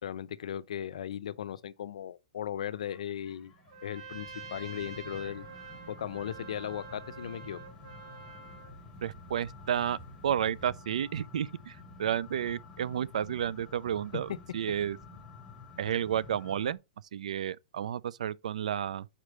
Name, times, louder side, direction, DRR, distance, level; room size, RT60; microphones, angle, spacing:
voice 1, 0.0-3.5 3.8-5.4 5.9-7.6, left 10 dB, 60° left, 0.5 m, -37 dB
sound 1, 2.7-16.7, left 3 dB, 5° left, 0.8 m, -51 dB
Trumpet, 3.7-8.7, right 6 dB, 55° right, 2.1 m, -47 dB
sound 2, 4.1-10.8, right 2 dB, 30° right, 1.0 m, -56 dB
voice 2, 9.0-10.0 10.2-15.0 15.8-16.8 17.1-19.1, right 9 dB, 70° right, 0.3 m, -31 dB
5.0 x 4.3 x 5.0 m
hypercardioid pair, 180°, 4 cm